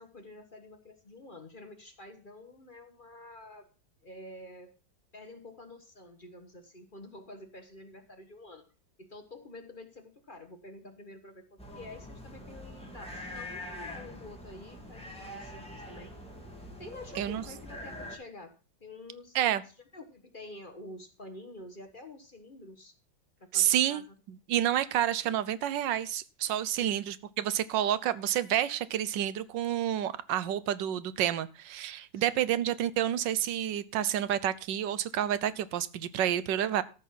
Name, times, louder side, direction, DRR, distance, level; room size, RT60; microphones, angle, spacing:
voice 1, 0.0-3.7 4.0-4.7 5.1-8.7 9.0-16.1 16.8-19.6 19.9-22.9 23.4-24.1 26.7-27.0 32.1-32.5, left 2 dB, 30° left, 6 dB, 1.3 m, -48 dB
sound 1, 11.6-18.2, left 1 dB, 5° left, 2.5 m, -44 dB
voice 2, 23.5-24.0 24.5-36.8, right 11 dB, 80° right, 16 dB, 1.4 m, -29 dB
14.0 x 6.4 x 5.8 m, 0.35 s
omnidirectional pair, 2.0 m